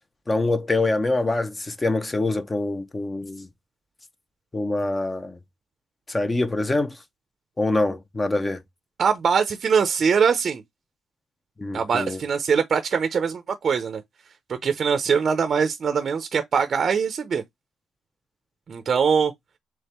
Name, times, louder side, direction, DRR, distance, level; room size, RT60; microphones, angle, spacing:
voice 1, 0.3-3.5 4.5-5.4 6.1-6.9 7.6-8.6 11.6-12.2, left 2 dB, 20° left, 0.8 m, -25 dB
voice 2, 9.0-10.6 11.7-14.0 14.5-17.4 18.7-19.3, right 6 dB, 50° right, 0.6 m, -22 dB
3.6 x 3.1 x 4.2 m
cardioid pair, 90°, 0 cm